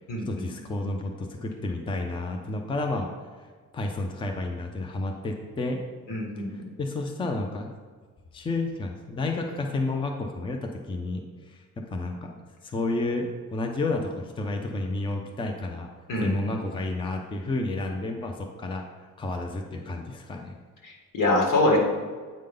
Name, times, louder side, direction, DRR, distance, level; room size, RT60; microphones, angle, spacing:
voice 1, 0.2-3.1 3.7-5.8 6.8-7.7 8.3-15.9 16.2-18.8 19.2-20.6, left 2 dB, 15° left, 3 dB, 0.5 m, -31 dB
voice 2, 6.1-6.5 16.1-16.5 20.8-21.8, left 2 dB, 75° left, -2 dB, 2.2 m, -24 dB
8.6 x 5.1 x 3.8 m, 1.5 s
cardioid pair, 180°, 33 cm